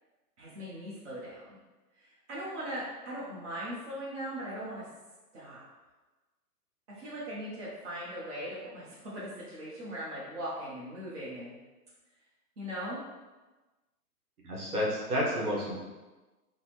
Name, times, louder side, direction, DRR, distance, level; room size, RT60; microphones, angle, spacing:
voice 1, 0.4-1.6 2.0-4.9 5.3-5.6 6.9-11.5 12.6-13.0, equal, 50° right, -7 dB, 1.0 m, -39 dB
voice 2, 14.4-15.8, equal, 70° right, -4 dB, 1.3 m, -30 dB
3.8 x 2.1 x 3.0 m, 1.2 s
hypercardioid pair, 140°, 46 cm